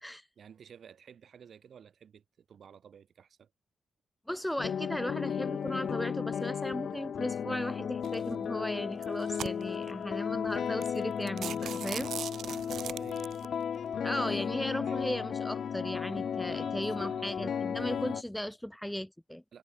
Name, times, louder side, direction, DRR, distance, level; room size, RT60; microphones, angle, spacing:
voice 1, 0.4-3.5 12.4-13.4 13.9-14.0 14.8-15.0 16.5-17.3 19.5-19.6, right 7 dB, 65° right, 6.5 m, -53 dB
voice 2, 4.3-12.1 14.0-19.4, equal, 5° left, 0.5 m, -36 dB
sound 1, 4.6-18.2, left 7 dB, 65° left, 0.9 m, -34 dB
sound 2, 8.0-8.3 8.9-9.9 10.4-10.5 10.8-11.0 11.3-13.5, right 9 dB, 80° right, 0.7 m, -40 dB
wide cardioid pair, 120°, 0 cm